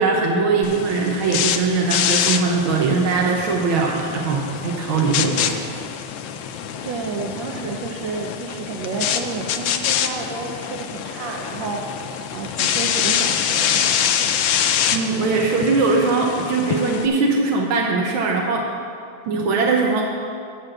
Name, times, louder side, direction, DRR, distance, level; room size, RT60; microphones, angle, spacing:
voice 1, 0.0-5.6 14.9-18.7 19.3-20.0, right 4 dB, 90° right, 0 dB, 1.8 m, -20 dB
sound 1, 0.6-17.1, left 9 dB, 75° left, 1.3 m, -25 dB
voice 2, 6.8-11.8 12.3-14.3, right 4 dB, 70° right, 2 dB, 1.5 m, -30 dB
10.0 x 6.1 x 7.8 m, 2.4 s
omnidirectional pair, 2.1 m